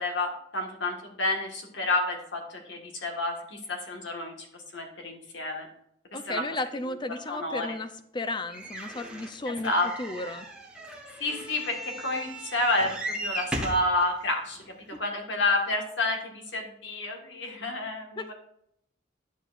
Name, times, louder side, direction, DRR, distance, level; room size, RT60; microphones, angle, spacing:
voice 1, 0.0-4.5 4.7-5.7 6.1-6.4 7.1-7.7 9.5-9.9 11.2-18.3, left 2 dB, 65° left, 2 dB, 1.6 m, -30 dB
voice 2, 6.1-9.7 10.0-10.5 14.9-15.0 18.2-18.3, left 2 dB, 25° left, 10 dB, 0.6 m, -34 dB
sound 1, 8.5-13.9 14.6-14.7 14.9-15.0, right 1 dB, 5° right, 1.1 m, -37 dB
11.0 x 7.3 x 2.5 m, 0.73 s
head